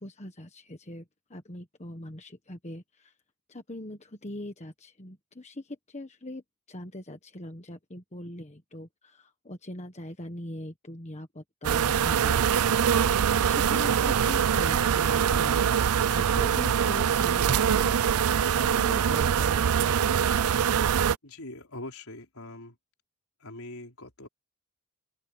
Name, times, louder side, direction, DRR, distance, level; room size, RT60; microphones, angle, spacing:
voice 1, 0.0-3.1 3.5-6.4 6.7-13.1 13.4-18.1 18.4-20.0, left 1 dB, 30° left, 1.4 m, -41 dB
sound 1, 11.6-21.2, right 8 dB, 80° right, 0.5 m, -23 dB
voice 2, 21.2-22.8 23.4-24.3, left 2 dB, 75° left, 4.9 m, -42 dB
open air
head